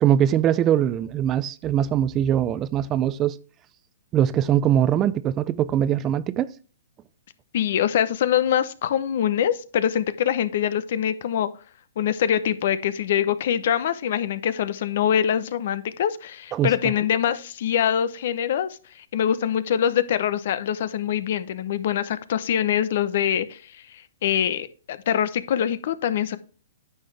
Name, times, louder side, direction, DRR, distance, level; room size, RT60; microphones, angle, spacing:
voice 1, 0.0-3.4 4.1-6.5 16.5-16.9, right 10 dB, 25° right, 0.4 m, -22 dB
voice 2, 7.5-11.5 12.0-26.4, left 9 dB, 60° left, 0.8 m, -24 dB
9.8 x 6.6 x 3.3 m
hypercardioid pair, 135°, 0 cm